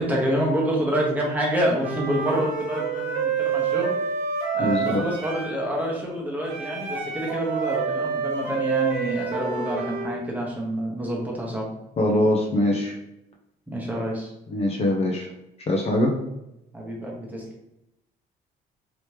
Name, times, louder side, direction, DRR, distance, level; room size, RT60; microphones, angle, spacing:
voice 1, 0.0-4.0 4.5-11.7 13.7-14.3 16.7-17.4, right 1 dB, 10° right, -3 dB, 1.1 m, -27 dB
Wind instrument woodwind instrument, 1.8-5.6 6.5-10.1, right 6 dB, 85° right, 0.7 m, -28 dB
voice 2, 4.6-5.0 12.0-13.0 14.5-15.3 15.7-16.1, left 1 dB, 35° left, 0 dB, 0.6 m, -22 dB
3.2 x 2.9 x 3.2 m, 0.87 s
cardioid pair, 110°, 17 cm